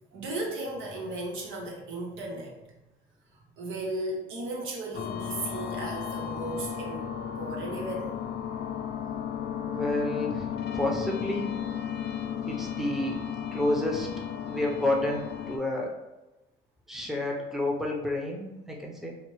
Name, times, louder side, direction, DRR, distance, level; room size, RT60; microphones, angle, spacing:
voice 1, 0.1-2.7 3.6-7.0 7.4-8.2, right 2 dB, 85° right, 0 dB, 0.8 m, -35 dB
sound 1, 4.9-15.6, left 8 dB, 55° left, 0.4 m, -34 dB
voice 2, 9.6-11.5 12.5-13.2 13.5-14.1 14.5-15.9 16.9-19.1, left 1 dB, ahead, -1 dB, 0.6 m, -30 dB
4.1 x 2.0 x 3.0 m, 1.0 s
cardioid pair, 90°, 20 cm